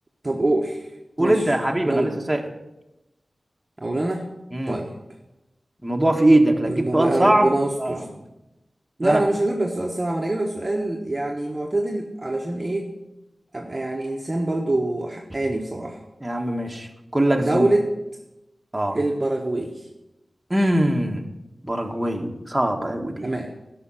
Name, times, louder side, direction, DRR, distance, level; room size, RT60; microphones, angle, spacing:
voice 1, 0.2-0.9 1.2-1.5 1.9-2.2 3.8-4.3 4.7-4.9 6.6-8.1 9.0-12.9 13.5-16.0 17.4-17.9 18.9-19.9 23.2-23.5, right 2 dB, 30° right, 1 dB, 1.2 m, -25 dB
voice 2, 1.2-2.4 4.5-4.8 5.8-7.5 7.8-8.0 9.0-9.2 16.2-16.9 17.1-17.7 18.7-19.0 20.5-21.2 21.6-23.3, right 1 dB, 15° right, 2 dB, 1.5 m, -21 dB
12.0 x 6.0 x 8.9 m, 0.94 s
wide cardioid pair, 75°, 0 cm